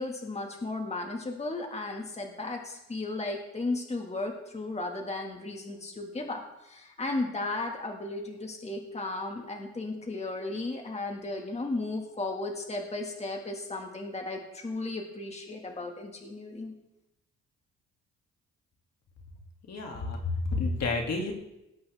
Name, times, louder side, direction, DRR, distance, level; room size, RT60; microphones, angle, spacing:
voice 1, 0.0-16.7, left 2 dB, 20° left, 2 dB, 1.9 m, -35 dB
voice 2, 19.7-21.3, left 3 dB, 60° left, 1 dB, 2.6 m, -30 dB
18.5 x 8.7 x 3.5 m, 0.91 s
cardioid pair, 90°, 30 cm